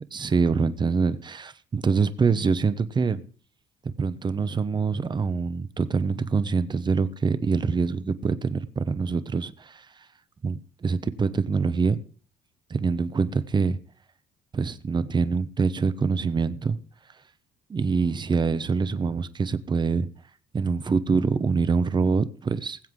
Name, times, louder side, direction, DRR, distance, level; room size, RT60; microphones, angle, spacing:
voice 1, 0.1-3.2 3.8-9.9 10.4-12.0 12.7-13.8 14.5-16.8 17.7-20.1 20.5-22.8, right 5 dB, 25° right, 0.9 m, -25 dB
20.5 x 7.8 x 3.8 m
cardioid pair, 110°, 17 cm